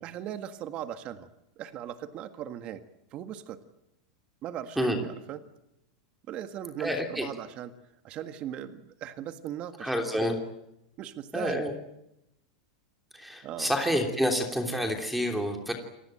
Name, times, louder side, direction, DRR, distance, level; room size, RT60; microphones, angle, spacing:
voice 1, 0.0-1.3 1.6-2.8 3.1-3.6 4.4-5.4 6.3-7.7 8.0-10.3 11.0-11.7 13.4-13.7, right 10 dB, 35° right, 9 dB, 1.7 m, -38 dB
voice 2, 6.8-7.2 9.8-10.4 11.3-11.7 13.1-15.7, equal, 5° right, 4 dB, 3.1 m, -28 dB
28.0 x 19.5 x 9.1 m, 0.86 s
supercardioid pair, 150°, 3 cm